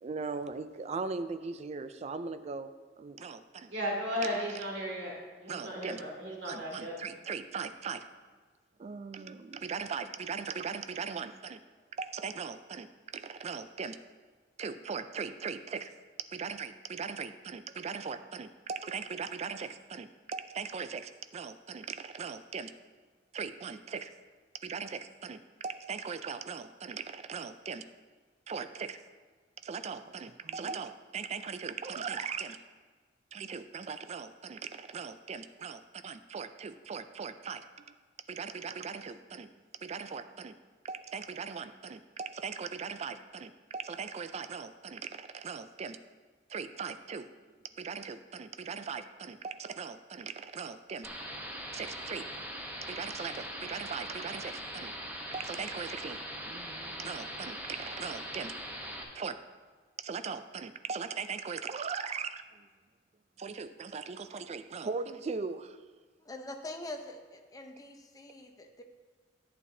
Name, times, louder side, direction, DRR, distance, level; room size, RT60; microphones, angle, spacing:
voice 1, 0.0-2.7 3.0-3.7 4.4-4.6 5.5-6.0 6.4-8.0 8.8-11.6 12.0-14.0 14.6-15.9 16.3-22.7 23.3-24.1 24.6-27.8 28.5-29.0 29.6-32.6 33.3-37.6 38.3-39.5 39.8-40.5 40.8-46.0 46.5-47.3 47.8-51.1 51.7-52.3 52.8-54.9 55.3-58.5 59.1-59.4 60.0-62.7 63.4-65.8, right 5 dB, 35° right, 11 dB, 0.4 m, -39 dB
voice 2, 3.7-6.9, equal, 75° right, -3 dB, 2.4 m, -35 dB
sound 1, 51.0-59.0, equal, 10° right, 0.9 m, -41 dB
voice 3, 66.3-68.8, left 1 dB, 20° left, 4 dB, 0.7 m, -44 dB
11.0 x 9.0 x 2.7 m, 1.4 s
head